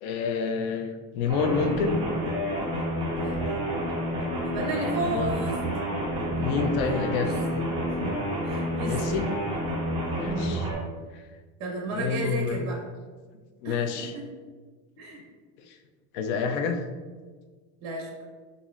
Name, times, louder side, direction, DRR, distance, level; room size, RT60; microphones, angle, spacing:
voice 1, 0.0-2.0 5.1-5.3 6.4-7.3 8.8-9.3 10.1-10.7 11.1-11.2 11.9-12.6 13.6-14.1 15.6-15.8 16.1-16.8, left 5 dB, 90° left, 5 dB, 0.5 m, -28 dB
sound 1, 1.3-10.7, equal, 15° right, 0.5 m, -29 dB
voice 2, 3.1-3.6 4.4-5.6 6.2-6.5 6.8-7.6 7.9-9.2 10.2-10.5 11.6-12.8 13.6-14.2 15.0-15.2 17.8-18.1, right 2 dB, 40° right, -2 dB, 0.9 m, -34 dB
5.5 x 2.6 x 2.4 m, 1.4 s
cardioid pair, 165°, 41 cm